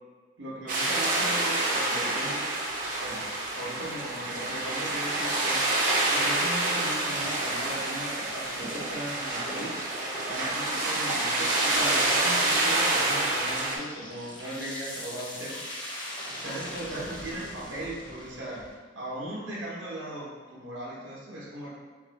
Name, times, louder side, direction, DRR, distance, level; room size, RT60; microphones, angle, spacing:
voice 1, 0.4-2.5 3.0-3.2 3.5-5.6 6.1-9.7 10.3-15.6 16.4-18.6 18.9-21.7, right 1 dB, 75° right, -4 dB, 0.9 m, -38 dB
sound 1, 0.7-13.8, right 2 dB, 45° right, 0.7 m, -27 dB
sound 2, 4.3-18.8, equal, 25° left, 0.8 m, -43 dB
3.5 x 2.6 x 4.0 m, 1.5 s
head